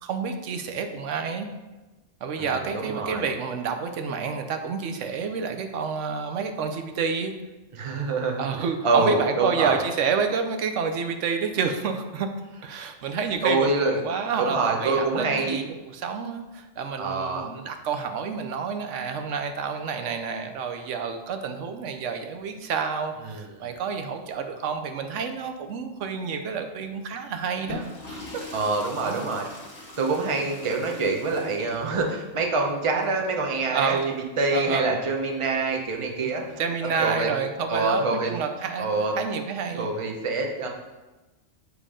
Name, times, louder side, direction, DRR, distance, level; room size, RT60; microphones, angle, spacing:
voice 1, 0.0-1.5 2.2-7.3 8.4-12.3 12.6-28.7 29.1-29.4 33.7-34.2 34.5-35.0 36.2-36.3 36.6-39.9, right 6 dB, 85° right, 6 dB, 1.0 m, -29 dB
voice 2, 2.7-3.3 7.7-8.4 8.8-9.8 13.4-14.0 14.4-15.6 17.0-17.4 23.3-23.7 28.5-29.4 30.0-34.0 34.4-36.4 37.0-37.3 37.7-38.3 38.8-39.1 39.8-40.7, right 3 dB, 30° right, 2 dB, 0.7 m, -25 dB
sound 1, 27.5-34.2 35.5-36.9, left 3 dB, 35° left, 1.6 m, -43 dB
7.5 x 3.3 x 5.0 m, 1.1 s
omnidirectional pair, 1.2 m